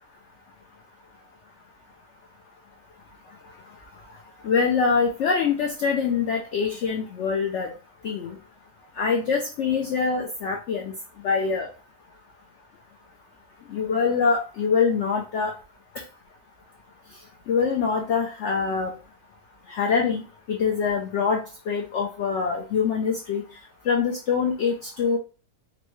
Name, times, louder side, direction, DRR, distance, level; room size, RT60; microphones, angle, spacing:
voice 1, 4.4-7.7 8.0-8.4 9.0-10.9 11.2-11.7 13.7-15.5 17.5-18.9 19.7-23.4 23.9-25.2, left 5 dB, 85° left, 3 dB, 0.6 m, -24 dB
4.0 x 2.2 x 3.0 m, 0.35 s
omnidirectional pair, 1.7 m